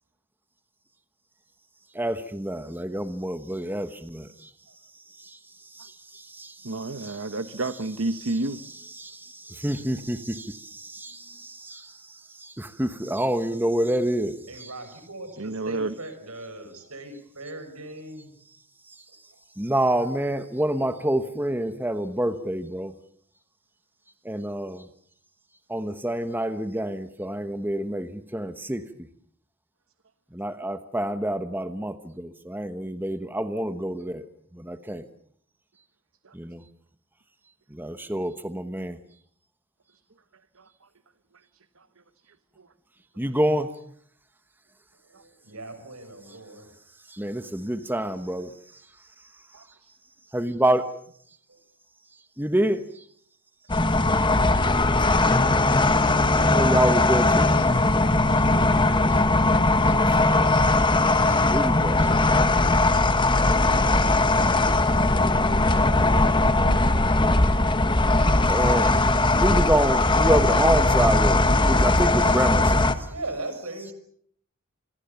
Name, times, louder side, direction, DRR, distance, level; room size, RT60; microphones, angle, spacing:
voice 1, 1.9-4.3 5.2-5.4 5.7-7.5 8.1-14.7 18.9-19.0 19.6-22.9 24.2-24.9 25.7-28.9 30.3-34.2 34.5-35.0 36.3-36.6 37.7-39.0 43.2-43.8 47.1-48.6 50.3-51.0 52.4-53.0 55.1-55.7 56.3-57.5 61.5-62.1 68.5-68.9 69.4-73.1, right 1 dB, 10° right, 10 dB, 1.1 m, -27 dB
voice 2, 6.6-8.6 15.4-15.9, right 2 dB, 65° right, 11 dB, 1.1 m, -30 dB
voice 3, 14.5-18.3 19.3-19.4 45.0-46.7 51.5-51.6 73.1-73.9, right 2 dB, 85° right, 9 dB, 6.6 m, -39 dB
sound 1, 53.7-72.9, left 2 dB, 20° left, 1.3 m, -20 dB
27.0 x 22.5 x 7.0 m, 0.64 s
head